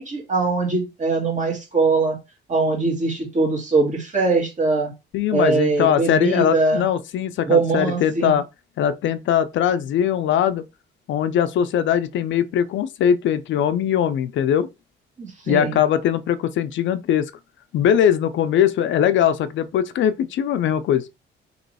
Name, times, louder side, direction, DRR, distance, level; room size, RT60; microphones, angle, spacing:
voice 1, 0.0-2.2 2.5-4.9 5.3-6.8 7.5-8.3 15.2-15.8, right 3 dB, 35° right, 1.7 m, -21 dB
voice 2, 5.1-8.4 8.8-10.6 11.1-14.7 15.5-17.3 17.7-21.0, left 9 dB, 70° left, 0.4 m, -21 dB
3.0 x 3.0 x 4.0 m
cardioid pair, 155°, 20 cm